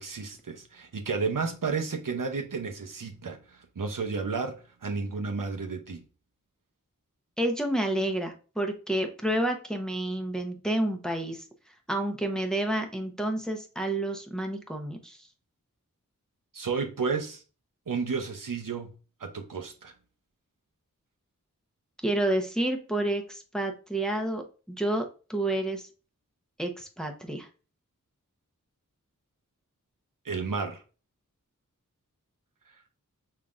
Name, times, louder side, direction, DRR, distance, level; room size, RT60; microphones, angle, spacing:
voice 1, 0.0-3.4 3.8-6.0 16.5-17.4 17.9-18.9 19.2-19.9 30.2-30.8, right 4 dB, 75° right, 0.7 m, -32 dB
voice 2, 7.4-11.4 11.9-15.2 22.0-25.8 26.6-27.5, right 1 dB, ahead, 0.8 m, -29 dB
5.6 x 3.7 x 2.5 m
wide cardioid pair, 50°, 32 cm